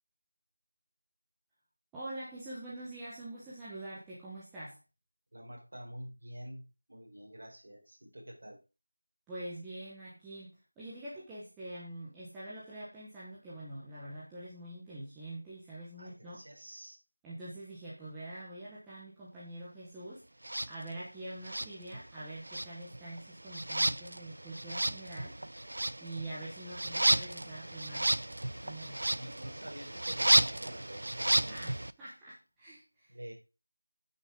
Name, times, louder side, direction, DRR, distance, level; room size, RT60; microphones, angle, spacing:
voice 1, 1.9-4.8 9.3-10.5 10.8-16.4 17.2-20.2 20.7-25.4 26.0-28.2 28.6-29.0 31.5-33.3, right 1 dB, 5° right, -10 dB, 0.9 m, -45 dB
voice 2, 5.3-8.6 16.0-17.0 25.7-25.8 29.0-31.6 33.1-33.3, equal, 45° right, -1 dB, 4.1 m, -48 dB
sound 1, 20.4-20.7 21.4-22.2 22.4-31.9, right 1 dB, 60° right, 0.5 m, -32 dB
9.3 x 6.2 x 4.9 m, 0.30 s
figure-of-eight pair, 180°, 0 cm